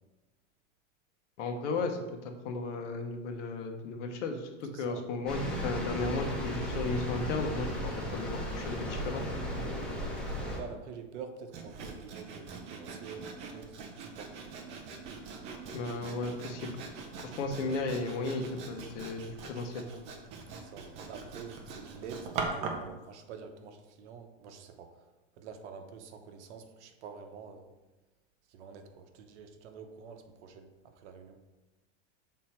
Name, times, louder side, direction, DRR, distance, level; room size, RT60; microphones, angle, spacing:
voice 1, 1.4-9.2 15.7-16.8 17.2-19.9, left 3 dB, 70° left, 5 dB, 1.1 m, -35 dB
voice 2, 4.7-5.0 9.6-14.3 20.5-24.9 25.4-27.7 28.5-31.4, right 6 dB, 65° right, 7 dB, 0.9 m, -47 dB
sound 1, 5.3-10.6, equal, ahead, 0.8 m, -35 dB
Sawing, 11.5-22.9, right 4 dB, 20° right, 0.3 m, -42 dB
6.3 x 3.8 x 4.3 m, 1.1 s
supercardioid pair, 155°, 38 cm